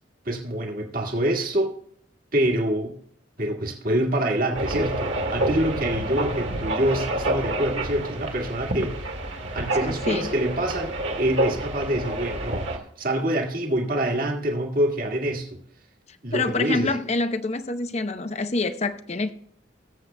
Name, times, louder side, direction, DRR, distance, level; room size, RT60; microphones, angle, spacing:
voice 1, 0.2-1.8 2.3-3.0 3.4-9.0 9.5-15.6 16.2-16.9, right 1 dB, 50° right, 1.7 m, -26 dB
sound 1, 4.5-12.8, right 1 dB, 70° right, 1.8 m, -28 dB
voice 2, 9.8-10.4 16.3-19.3, left 3 dB, 35° left, 0.7 m, -26 dB
20.5 x 7.6 x 2.2 m
head